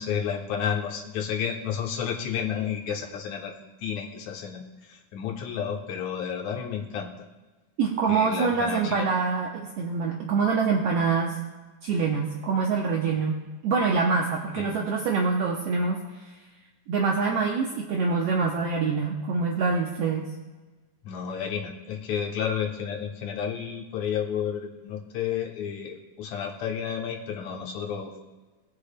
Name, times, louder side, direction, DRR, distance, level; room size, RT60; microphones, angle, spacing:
voice 1, 0.0-3.5 3.8-7.1 8.1-9.1 14.5-14.8 21.0-28.1, left 8 dB, 70° left, 2 dB, 2.1 m, -31 dB
voice 2, 7.8-11.4 11.8-16.0 16.9-20.3, right 4 dB, 85° right, 0 dB, 1.4 m, -25 dB
20.0 x 6.7 x 2.2 m, 1.2 s
omnidirectional pair, 3.8 m